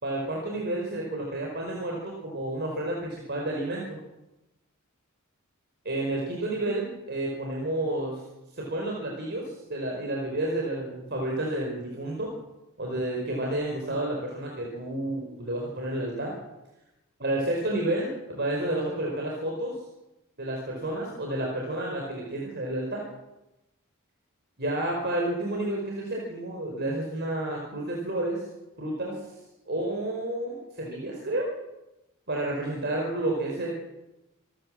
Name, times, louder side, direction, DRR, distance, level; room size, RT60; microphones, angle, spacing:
voice 1, 0.0-4.0 5.8-8.2 8.5-12.3 12.8-16.3 17.2-19.7 20.4-23.0 24.6-28.4 28.8-29.2 29.7-31.5 32.3-33.7, right 1 dB, 50° right, -1 dB, 4.6 m, -30 dB
27.0 x 13.0 x 7.5 m, 0.97 s
head